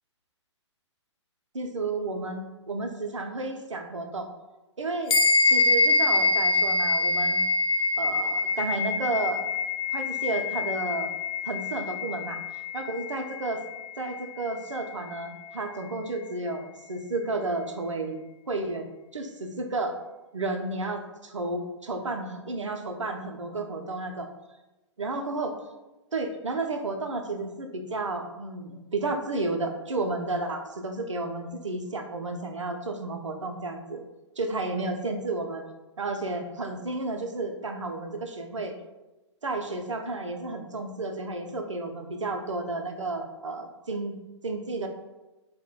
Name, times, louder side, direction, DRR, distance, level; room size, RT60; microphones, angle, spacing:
voice 1, 1.5-4.3 4.8-5.1 5.4-7.4 8.0-9.5 9.9-11.1 11.4-13.6 14.0-18.2 18.5-19.2 19.6-19.9 20.3-24.3 25.0-25.6 26.1-34.0 34.4-35.6 36.0-38.7 39.4-44.9, right 2 dB, 80° right, 4 dB, 0.4 m, -32 dB
sound 1, 5.1-14.8, left 3 dB, 55° left, 0.4 m, -25 dB
2.1 x 2.1 x 3.6 m, 1.1 s
figure-of-eight pair, 115°, 15 cm